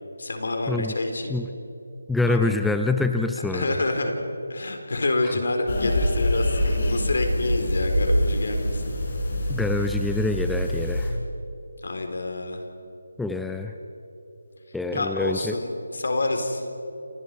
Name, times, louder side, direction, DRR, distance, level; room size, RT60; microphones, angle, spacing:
voice 1, 0.2-1.4 2.3-2.4 3.4-4.2 4.5-8.8 11.8-12.6 14.9-16.6, left 2 dB, 70° left, 4 dB, 4.1 m, -27 dB
voice 2, 2.1-3.8 9.5-11.1 13.2-13.7 14.7-15.6, left 2 dB, ahead, 5 dB, 0.6 m, -25 dB
sound 1, 5.7-11.1, equal, 50° left, 7.1 m, -25 dB
28.5 x 28.5 x 4.8 m, 2.9 s
figure-of-eight pair, 165°, 0 cm